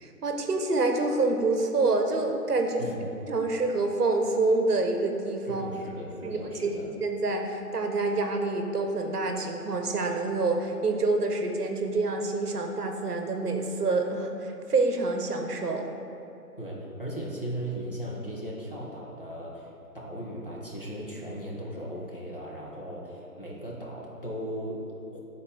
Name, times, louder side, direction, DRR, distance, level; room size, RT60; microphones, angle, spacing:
voice 1, 0.0-2.9 3.3-5.7 6.2-6.7 7.0-15.9, right 3 dB, 70° right, 4 dB, 0.9 m, -27 dB
voice 2, 2.8-3.1 5.5-6.9 16.6-25.2, right 1 dB, 35° left, -5 dB, 0.8 m, -37 dB
8.5 x 4.1 x 3.2 m, 2.8 s
figure-of-eight pair, 175°, 48 cm